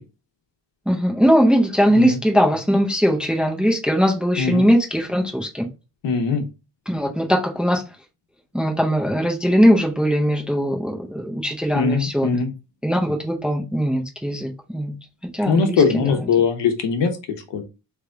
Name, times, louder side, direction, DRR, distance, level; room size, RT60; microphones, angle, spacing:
voice 1, 0.9-5.7 6.9-7.8 8.5-12.3 12.8-14.9 15.3-16.0, equal, ahead, 0.5 m, -20 dB
voice 2, 4.4-4.7 6.0-6.5 11.7-12.5 15.5-17.6, left 5 dB, 85° left, 1.2 m, -21 dB
3.9 x 3.3 x 3.4 m
cardioid pair, 170°, 42 cm